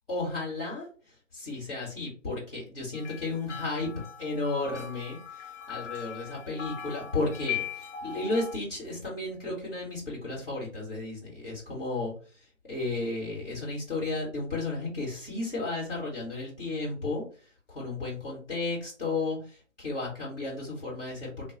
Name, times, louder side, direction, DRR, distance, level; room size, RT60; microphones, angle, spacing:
voice 1, 0.1-3.9 4.2-21.5, left 2 dB, 50° left, -4 dB, 1.5 m, -34 dB
sound 1, 2.9-8.6, left 8 dB, 65° left, 0.7 m, -39 dB
2.5 x 2.3 x 3.7 m, 0.37 s
figure-of-eight pair, 170°, 38 cm